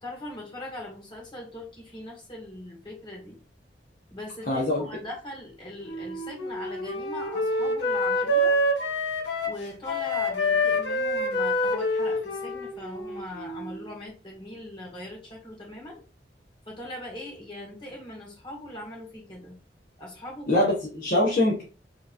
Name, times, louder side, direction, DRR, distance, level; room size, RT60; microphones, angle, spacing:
voice 1, 0.0-3.4 4.1-8.6 9.4-16.0 16.7-19.6 20.0-20.5, left 1 dB, 30° left, -2 dB, 1.8 m, -40 dB
voice 2, 4.5-4.8 20.5-21.6, left 1 dB, 50° left, -5 dB, 1.0 m, -23 dB
Wind instrument woodwind instrument, 5.9-13.9, left 1 dB, 85° left, 0.9 m, -27 dB
4.6 x 3.2 x 2.5 m, 0.35 s
head